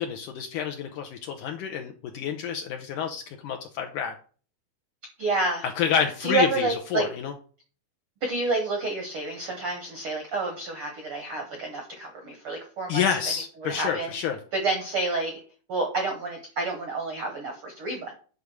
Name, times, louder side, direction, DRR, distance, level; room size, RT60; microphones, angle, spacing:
voice 1, 0.0-4.1 5.6-7.3 12.9-14.4, left 8 dB, 75° left, 3 dB, 1.9 m, -28 dB
voice 2, 5.2-5.6 6.2-7.0 8.2-13.0 13.6-14.1 14.5-15.4 15.7-18.1, right 3 dB, 70° right, 3 dB, 1.3 m, -29 dB
9.4 x 3.5 x 6.4 m, 0.41 s
omnidirectional pair, 4.3 m